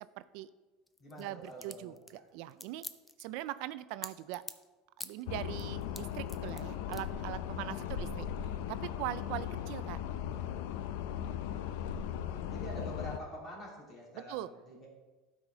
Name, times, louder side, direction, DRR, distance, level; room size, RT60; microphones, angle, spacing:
voice 1, 0.2-0.5 1.2-1.9 2.3-2.8 3.2-4.4 5.0-10.0 14.1-14.5, right 15 dB, 65° right, 15 dB, 0.3 m, -41 dB
sound 1, 0.9-4.7 5.0-5.2 5.6-6.6 6.9-7.0, left 1 dB, 5° left, 0.4 m, -45 dB
voice 2, 1.0-2.2 12.2-14.9, equal, 30° left, -3 dB, 2.9 m, -46 dB
sound 2, 5.3-13.2, left 9 dB, 75° left, 0.5 m, -38 dB
12.0 x 4.9 x 3.8 m, 1.2 s
supercardioid pair, 145°, 0 cm